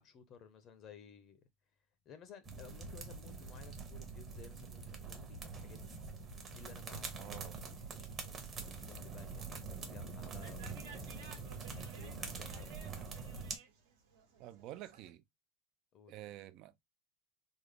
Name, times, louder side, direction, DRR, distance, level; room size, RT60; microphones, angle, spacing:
voice 1, 0.0-1.4 2.1-6.0 6.4-8.1 8.5-13.2 15.9-16.1, left 7 dB, 40° left, 0.6 m, -57 dB
sound 1, 2.4-13.6, right 4 dB, 30° right, 0.9 m, -45 dB
sound 2, 6.0-15.1, right 5 dB, 90° right, 1.2 m, -60 dB
voice 2, 7.2-7.6 14.4-15.2 16.1-16.8, right 14 dB, 50° right, 0.4 m, -49 dB
3.6 x 2.0 x 3.3 m
supercardioid pair, 140°, 0 cm